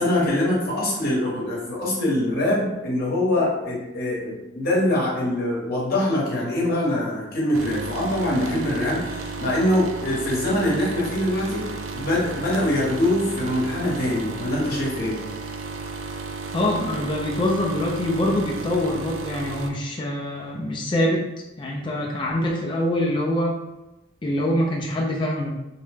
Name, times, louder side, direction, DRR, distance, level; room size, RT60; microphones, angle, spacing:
voice 1, 0.0-15.2, left 1 dB, 45° left, -5 dB, 0.9 m, -23 dB
sound 1, 7.5-19.7, right 4 dB, 85° right, 0.4 m, -33 dB
voice 2, 16.5-21.3 21.6-23.6 24.2-25.6, left 1 dB, 25° left, -2 dB, 0.3 m, -24 dB
2.8 x 2.1 x 3.3 m, 0.97 s
head